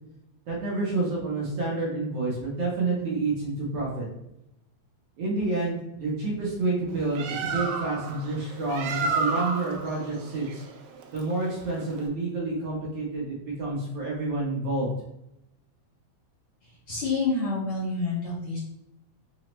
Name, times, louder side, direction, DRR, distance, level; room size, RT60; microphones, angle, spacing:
voice 1, 0.5-4.1 5.2-10.6 11.1-14.9, right 3 dB, 70° right, -4 dB, 1.8 m, -29 dB
Bird, 6.9-12.1, right 4 dB, 85° right, 1.9 m, -32 dB
voice 2, 16.6-18.6, left 3 dB, 70° left, -6 dB, 1.4 m, -28 dB
5.8 x 2.1 x 3.0 m, 0.84 s
omnidirectional pair, 3.3 m